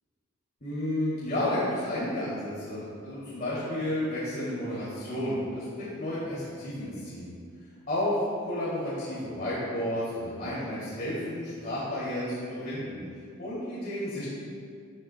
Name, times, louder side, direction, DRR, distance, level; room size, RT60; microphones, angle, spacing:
voice 1, 0.6-7.3 7.9-13.0 13.4-14.4, left 1 dB, 40° left, -10 dB, 2.6 m, -32 dB
13.5 x 12.0 x 2.2 m, 2.2 s
head